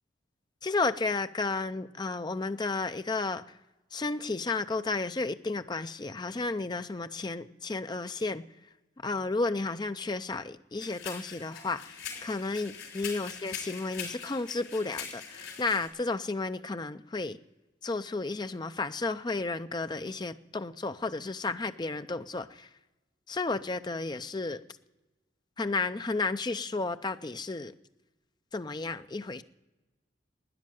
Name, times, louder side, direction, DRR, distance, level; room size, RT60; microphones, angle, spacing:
voice 1, 0.6-3.4 3.9-8.4 9.0-17.4 17.8-22.7 23.3-24.6 25.6-27.7 28.5-29.4, left 3 dB, 20° left, 10 dB, 0.5 m, -32 dB
sound 1, 10.8-15.9, left 7 dB, 80° left, 5.1 m, -42 dB
13.0 x 9.8 x 9.1 m, 1.1 s
head